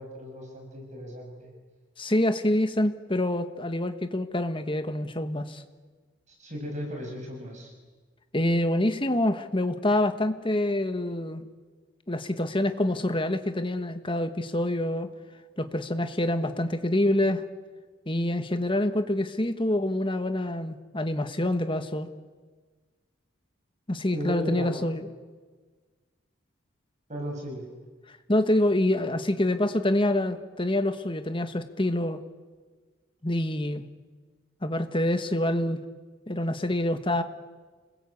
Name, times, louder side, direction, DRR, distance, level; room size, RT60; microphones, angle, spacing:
voice 1, 0.0-1.5 6.3-7.7 24.1-24.9 27.1-27.7, equal, 35° right, 0 dB, 6.7 m, -36 dB
voice 2, 2.0-5.6 8.3-11.4 12.1-15.1 15.6-17.4 18.1-22.1 23.9-25.1 28.1-32.2 33.2-33.8 34.6-35.8 36.3-37.2, left 1 dB, 25° left, 8 dB, 1.4 m, -26 dB
28.5 x 21.0 x 8.6 m, 1.4 s
head